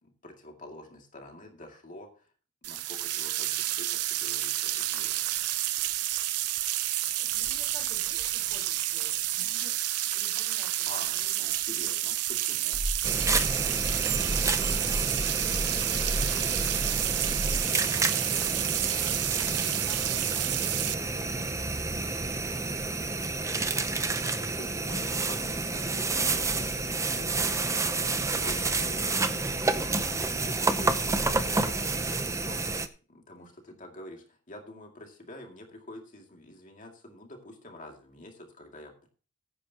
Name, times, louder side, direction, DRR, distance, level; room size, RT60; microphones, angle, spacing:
voice 1, 0.0-2.3 2.6-5.4 10.8-12.8 24.6-32.7 33.1-39.1, left 1 dB, 35° left, 2 dB, 2.3 m, -47 dB
Running water, 2.6-20.9, right 14 dB, 90° right, 0.7 m, -30 dB
voice 2, 6.5-12.0 13.6-14.9 15.3-16.7 17.0-22.7 23.2-25.6 33.4-33.5, left 1 dB, 15° left, 0 dB, 4.1 m, -53 dB
sound 1, 12.7-17.6, right 1 dB, 40° right, 1.5 m, -34 dB
sound 2, 13.0-32.9, right 3 dB, 15° right, 0.6 m, -29 dB
15.5 x 9.9 x 2.9 m, 0.38 s
head